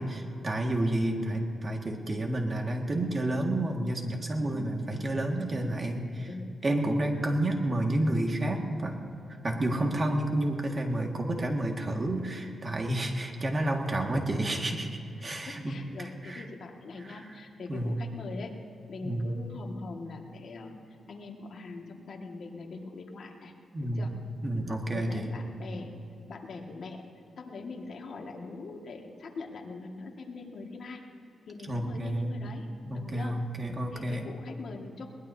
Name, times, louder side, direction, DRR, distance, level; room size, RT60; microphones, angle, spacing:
voice 1, 0.0-6.3 6.6-9.0 9.4-16.4 17.0-17.3 17.7-18.0 19.0-19.3 23.7-24.1 24.4-25.3 31.7-32.3 32.9-34.3, right 1 dB, 35° right, 2 dB, 1.9 m, -30 dB
voice 2, 4.5-4.8 5.6-5.8 6.3-6.5 14.1-14.2 15.2-18.5 18.9-23.5 24.0-24.1 24.7-25.9 26.3-27.0 27.4-31.0 31.5-32.7 32.9-33.4 33.9-35.1, left 3 dB, 60° left, 1 dB, 2.0 m, -42 dB
21.5 x 19.5 x 2.8 m, 2.6 s
cardioid pair, 90°, 0 cm